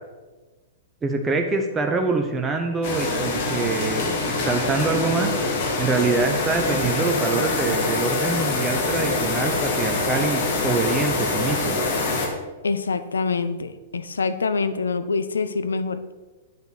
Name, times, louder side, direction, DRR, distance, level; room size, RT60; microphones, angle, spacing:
voice 1, 1.0-5.3 5.8-11.8, right 3 dB, 15° right, 3 dB, 0.8 m, -25 dB
sound 1, 2.8-12.3, left 3 dB, 50° left, 1.9 m, -25 dB
voice 2, 12.6-16.1, left 4 dB, 75° left, 12 dB, 0.6 m, -25 dB
8.9 x 5.4 x 6.1 m, 1.2 s
figure-of-eight pair, 105°, 0 cm